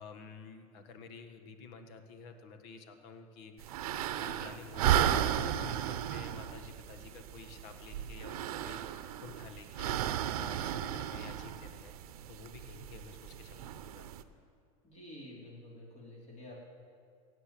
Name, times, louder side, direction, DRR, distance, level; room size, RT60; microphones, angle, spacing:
voice 1, 0.0-14.1, left 5 dB, 60° left, 8 dB, 1.5 m, -51 dB
sound 1, 3.6-14.2, right 10 dB, 75° right, 0.8 m, -34 dB
voice 2, 14.8-16.6, left 1 dB, 35° left, -2 dB, 4.4 m, -49 dB
16.5 x 8.5 x 7.7 m, 2.2 s
hypercardioid pair, 110°, 19 cm